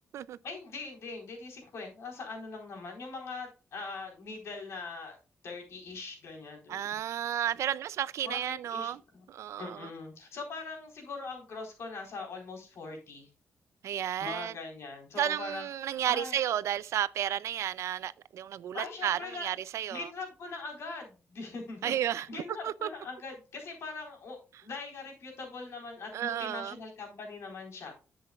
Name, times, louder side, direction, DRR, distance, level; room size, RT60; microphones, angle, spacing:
voice 1, 0.4-5.2 5.4-6.7 8.2-9.2 9.6-13.3 14.2-16.4 18.7-19.5 19.9-27.9, left 4 dB, 65° left, 4.0 m, -42 dB
voice 2, 6.7-9.0 9.3-9.9 13.8-14.5 15.2-20.1 21.8-22.9 26.1-26.7, right 11 dB, 80° right, 0.4 m, -32 dB
10.5 x 7.8 x 2.4 m
wide cardioid pair, 165°, 5 cm